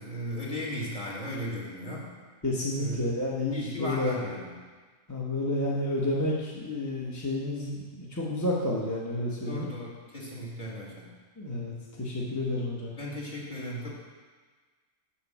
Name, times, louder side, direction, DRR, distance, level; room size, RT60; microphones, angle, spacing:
voice 1, 0.0-2.1 2.8-3.0 3.5-4.6 9.5-11.1 13.0-13.9, equal, 35° left, -5 dB, 2.1 m, -36 dB
voice 2, 2.4-4.4 5.1-9.7 11.4-12.9, left 1 dB, 15° left, -5 dB, 1.0 m, -30 dB
7.1 x 6.1 x 7.2 m, 1.4 s
omnidirectional pair, 1.3 m